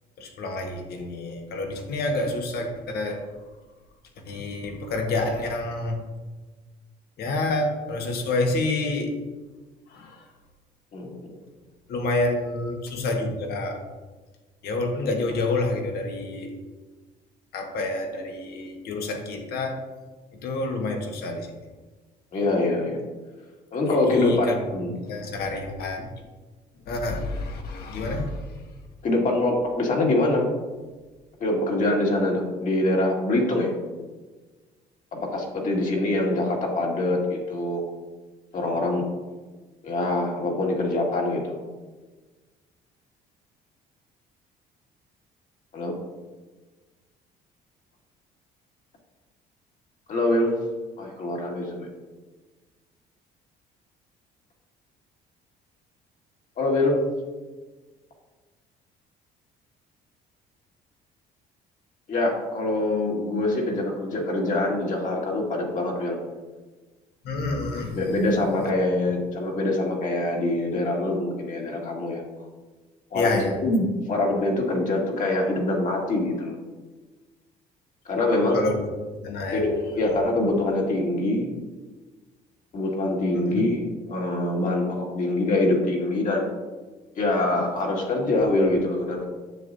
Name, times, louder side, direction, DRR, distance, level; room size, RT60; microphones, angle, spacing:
voice 1, 0.2-3.2 4.3-6.0 7.2-9.1 9.9-10.2 11.9-13.8 14.6-16.5 17.5-19.8 20.4-21.5 24.1-24.6 24.9-26.1 26.9-28.4 67.2-68.0 73.1-73.5 78.5-78.9 79.2-79.6 83.3-83.6, left 2 dB, 70° left, 3 dB, 1.5 m, -28 dB
voice 2, 10.9-11.3 22.3-23.0 23.7-24.9 29.0-30.5 31.4-33.7 35.1-37.8 38.5-39.0 39.8-41.6 45.7-45.9 50.1-50.5 51.0-51.9 56.6-57.0 62.1-66.2 67.9-72.2 73.1-76.5 78.1-78.6 79.5-81.5 82.7-86.5 87.2-89.3, left 2 dB, 50° left, -1 dB, 2.1 m, -24 dB
9.8 x 7.2 x 2.7 m, 1.3 s
cardioid pair, 110°, 17 cm